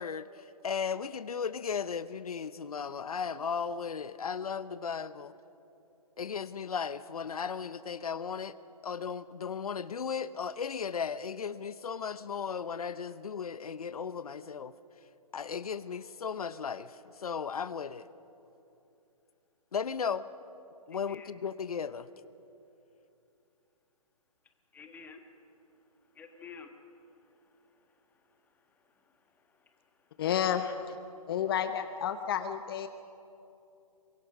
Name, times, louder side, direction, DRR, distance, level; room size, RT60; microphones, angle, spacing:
voice 1, 0.0-5.3 6.2-8.6 8.8-14.7 15.3-18.1 19.7-20.3 20.9-22.1, left 6 dB, 75° left, 15 dB, 0.7 m, -36 dB
voice 2, 20.9-21.3 24.7-30.2 31.1-31.3, left 5 dB, 10° left, 5 dB, 1.3 m, -54 dB
voice 3, 30.2-31.0 31.3-32.9, left 9 dB, 40° left, 9 dB, 0.8 m, -31 dB
24.5 x 22.0 x 6.0 m, 2.8 s
hypercardioid pair, 145°, 19 cm